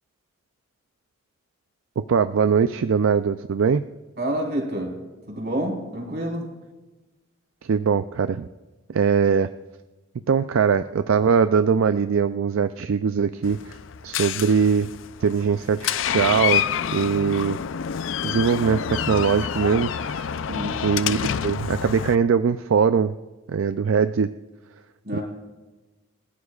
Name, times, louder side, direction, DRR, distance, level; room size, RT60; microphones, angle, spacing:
voice 1, 2.0-3.8 7.7-8.5 8.9-9.5 10.3-13.7 14.0-14.9 15.2-16.6 16.9-17.6 18.2-20.3 20.8-23.1 23.5-24.3 25.1-25.2, right 6 dB, 75° right, 11 dB, 0.4 m, -21 dB
voice 2, 4.2-5.0 5.3-6.5 20.5-20.8 25.0-25.2, right 1 dB, 50° right, -2 dB, 4.5 m, -28 dB
Door, 13.4-22.1, left 8 dB, 65° left, 0.4 m, -28 dB
28.0 x 14.5 x 2.4 m, 1.2 s
head